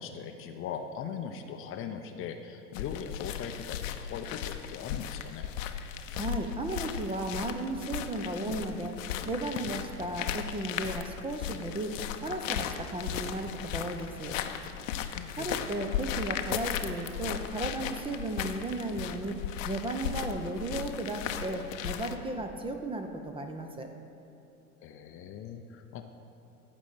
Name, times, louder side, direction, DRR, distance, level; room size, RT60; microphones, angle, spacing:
voice 1, 0.0-5.5 12.8-12.9 15.1-15.7 24.8-26.0, left 7 dB, 30° left, 6 dB, 0.7 m, -40 dB
sound 1, 2.7-22.1, left 9 dB, 60° left, 0.8 m, -36 dB
voice 2, 6.1-9.0 9.3-14.4 15.3-19.4 19.6-23.9, right 2 dB, 10° right, 5 dB, 0.7 m, -35 dB
14.0 x 5.2 x 7.5 m, 2.9 s
figure-of-eight pair, 90°, 44 cm